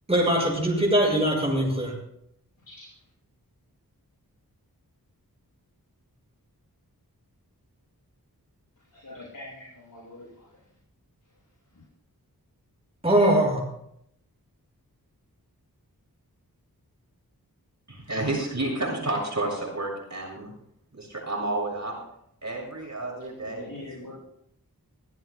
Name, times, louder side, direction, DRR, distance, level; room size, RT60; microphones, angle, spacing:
voice 1, 0.1-1.9 13.0-13.6, right 1 dB, 15° right, -2 dB, 6.3 m, -21 dB
voice 2, 8.9-10.5 23.4-24.1, left 2 dB, 65° left, -7 dB, 6.5 m, -43 dB
voice 3, 17.9-20.6 20.9-21.9 22.4-24.1, right 2 dB, 50° right, -2 dB, 6.8 m, -31 dB
23.5 x 15.5 x 2.3 m, 0.74 s
wide cardioid pair, 50°, 36 cm